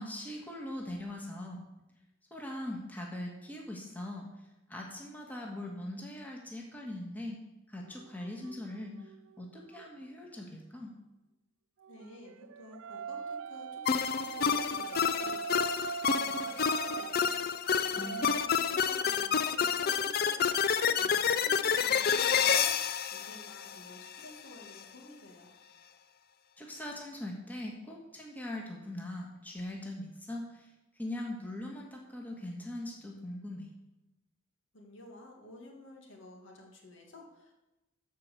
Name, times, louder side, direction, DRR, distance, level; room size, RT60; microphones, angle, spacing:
voice 1, 0.0-1.6 2.3-4.3 4.7-7.4 7.7-9.1 9.4-10.9 17.8-18.3 26.6-30.7 31.0-33.7, left 1 dB, 10° left, -1 dB, 1.6 m, -41 dB
sound 1, 7.8-9.9 11.8-19.2, right 7 dB, 90° right, 0.4 m, -42 dB
voice 2, 11.9-15.4 15.8-25.5 34.7-37.5, left 1 dB, 70° left, 0 dB, 2.3 m, -51 dB
sound 2, 13.9-24.2, left 7 dB, 50° left, 0.5 m, -29 dB
14.0 x 4.7 x 6.8 m, 1.0 s
head